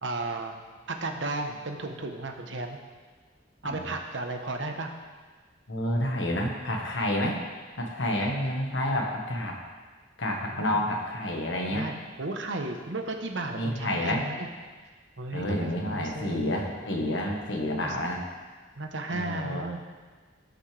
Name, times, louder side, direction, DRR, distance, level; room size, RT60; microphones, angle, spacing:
voice 1, 0.0-0.6 0.9-2.8 3.6-4.9 10.5-10.8 11.7-14.5 15.2-16.4 17.8-18.0 18.8-19.9, right 2 dB, 75° right, 4 dB, 1.1 m, -34 dB
voice 2, 5.7-7.4 7.8-9.6 10.2-11.9 13.5-14.2 15.3-18.2 19.1-19.7, left 1 dB, 75° left, 0 dB, 1.5 m, -29 dB
17.5 x 6.4 x 3.4 m, 1.4 s
head